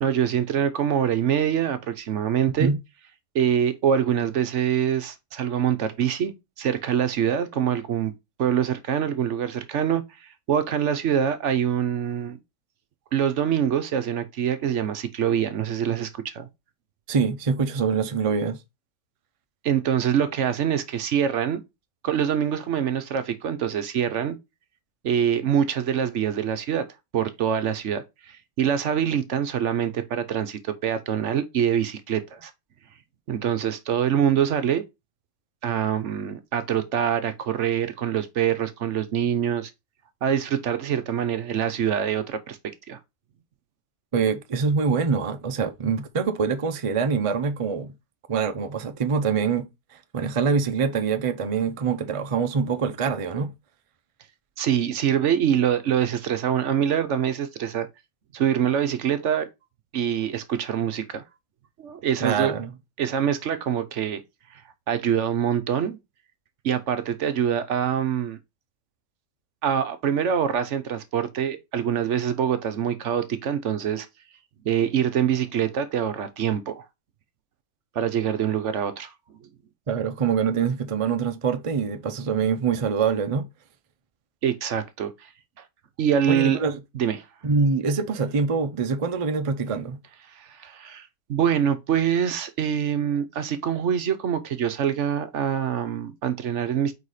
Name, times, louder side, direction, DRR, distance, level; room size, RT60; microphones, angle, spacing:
voice 1, 0.0-2.7 3.3-8.1 8.4-12.4 13.1-16.5 19.6-21.6 22.0-24.4 25.0-26.8 27.1-32.5 33.3-34.8 35.6-39.7 40.2-42.6 42.9-43.0 54.6-57.9 58.3-59.5 59.9-61.2 61.8-62.5 63.0-64.2 64.5-64.6 64.9-66.0 66.6-68.4 69.6-74.1 74.6-76.9 77.9-79.1 84.4-85.3 85.6-85.7 86.0-86.6 86.9-87.2 90.3-96.9, right 9 dB, 60° right, 1.0 m, -25 dB
voice 2, 17.1-18.6 44.1-47.9 48.3-49.7 50.1-53.5 62.2-62.7 79.9-83.5 86.3-86.8 87.4-90.0, right 5 dB, 45° right, 0.4 m, -24 dB
4.8 x 4.2 x 4.8 m
omnidirectional pair, 1.5 m